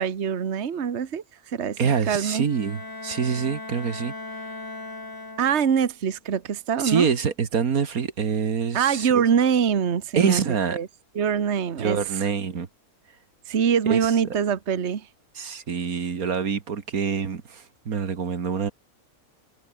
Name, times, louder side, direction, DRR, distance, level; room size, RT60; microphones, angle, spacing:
voice 1, 0.0-1.8 2.1-2.5 5.4-7.1 8.7-10.4 10.7-10.9 11.1-12.0 13.5-15.1, right 7 dB, 50° right, 1.5 m, -24 dB
voice 2, 1.8-4.1 6.8-9.2 10.1-10.8 11.8-12.7 13.9-14.1 15.4-18.7, right 6 dB, 80° right, 2.1 m, -26 dB
Bowed string instrument, 2.4-5.9, left 2 dB, 15° left, 1.1 m, -38 dB
omnidirectional pair, 1.5 m